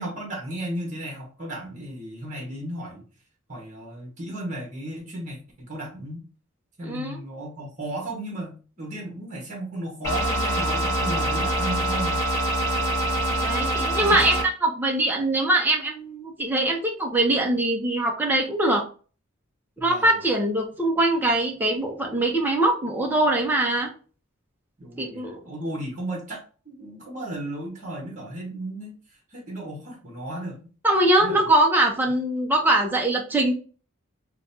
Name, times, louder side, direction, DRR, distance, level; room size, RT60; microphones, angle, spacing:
voice 1, 0.0-3.0 3.5-6.2 6.8-12.3 14.0-14.2 19.8-20.1 24.8-28.9 29.3-30.6 31.2-31.5, right 1 dB, 35° right, -2 dB, 1.2 m, -35 dB
voice 2, 6.8-7.2 13.4-18.8 19.8-23.9 25.0-25.4 30.8-33.5, right 1 dB, 10° right, 0 dB, 0.5 m, -22 dB
sound 1, 10.0-14.4, right 1 dB, 15° left, 1.4 m, -24 dB
5.1 x 2.2 x 2.6 m, 0.38 s
head